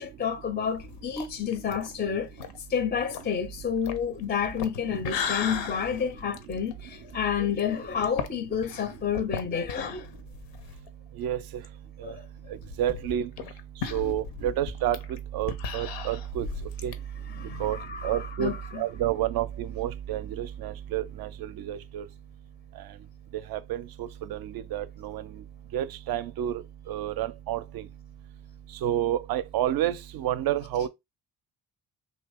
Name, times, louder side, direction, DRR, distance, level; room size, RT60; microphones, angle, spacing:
voice 1, 0.0-2.3 2.7-10.1 12.0-12.2 13.9-14.1 17.3-18.8, left 7 dB, 20° left, 0.5 m, -30 dB
sound 1, 0.7-10.9 11.2-11.3 11.6-11.7 12.4-16.9, left 7 dB, 70° left, 0.7 m, -37 dB
voice 2, 12.8-13.3 13.9-15.0 15.3-16.5 16.8-16.9 17.6-17.8 18.0-21.3 21.6-22.0 23.5-24.4 24.7-25.2 25.7-26.5 26.9-27.6 28.8-30.9, right 12 dB, 50° right, 0.5 m, -29 dB
2.9 x 2.7 x 3.4 m
hypercardioid pair, 45°, 47 cm